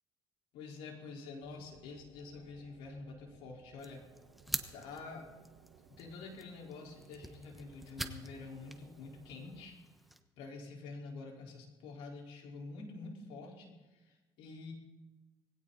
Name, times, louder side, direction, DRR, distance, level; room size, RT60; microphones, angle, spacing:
voice 1, 0.5-4.0 4.7-5.3 5.9-9.8 10.4-14.7, left 4 dB, 90° left, 0 dB, 4.6 m, -47 dB
sound 1, 1.4-9.7, right 8 dB, 90° right, 1.4 m, -62 dB
sound 2, 3.8-10.2, equal, ahead, 1.2 m, -46 dB
20.0 x 17.0 x 4.2 m, 1.2 s
cardioid pair, 120°, 9 cm